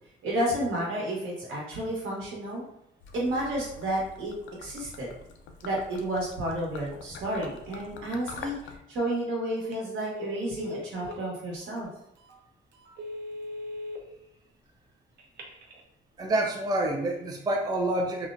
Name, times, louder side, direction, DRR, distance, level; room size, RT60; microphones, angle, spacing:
voice 1, 0.2-2.6 3.1-4.3 4.6-5.1 5.6-11.9, right 1 dB, 80° right, -4 dB, 1.1 m, -31 dB
Gurgling / Liquid, 3.0-8.8, left 4 dB, 75° left, 0.4 m, -45 dB
Telephone, 9.6-9.8 10.1-11.2 11.8-11.9 12.3-12.4 12.8-14.0 15.2-15.8, left 1 dB, 60° right, 0.6 m, -39 dB
voice 2, 16.2-18.3, right 1 dB, 20° right, 1 dB, 0.4 m, -27 dB
2.8 x 2.1 x 2.5 m, 0.79 s
cardioid pair, 90°, 20 cm